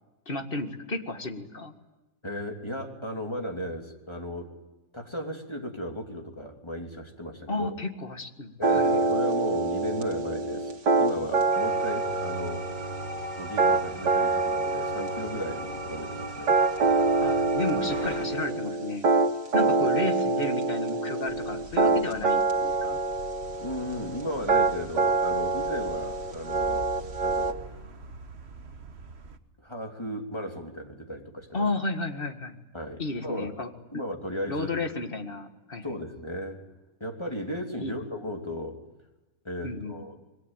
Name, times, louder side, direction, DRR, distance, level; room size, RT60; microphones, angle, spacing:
voice 1, 0.3-1.7 7.5-9.0 17.2-19.1 19.5-23.0 31.5-32.5 33.0-34.0 34.5-36.0 37.8-38.0 39.6-40.0, left 2 dB, 30° left, 5 dB, 2.2 m, -33 dB
voice 2, 2.2-4.6 4.9-7.7 8.6-10.7 11.0-12.7 13.4-16.6 19.6-19.9 23.6-26.9 27.2-27.6 29.6-31.7 32.7-33.5 33.9-34.8 35.8-36.6 37.0-38.8 39.4-40.3, equal, 15° left, 2 dB, 3.1 m, -35 dB
sound 1, 8.6-27.5, right 3 dB, 85° right, 2.6 m, -26 dB
sound 2, 11.5-18.2, right 1 dB, 25° right, 4.5 m, -38 dB
sound 3, 21.3-29.4, right 3 dB, 40° right, 1.5 m, -45 dB
26.5 x 22.5 x 9.2 m, 1.1 s
omnidirectional pair, 1.8 m